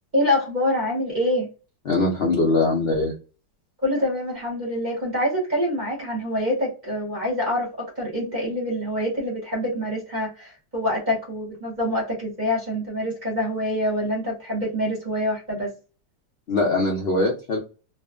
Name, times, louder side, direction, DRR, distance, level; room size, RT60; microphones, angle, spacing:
voice 1, 0.1-1.5 3.8-15.7, left 1 dB, 30° right, -3 dB, 1.0 m, -25 dB
voice 2, 1.9-3.1 16.5-17.6, left 2 dB, 65° left, -1 dB, 0.6 m, -22 dB
2.6 x 2.4 x 2.3 m, 0.32 s
omnidirectional pair, 1.9 m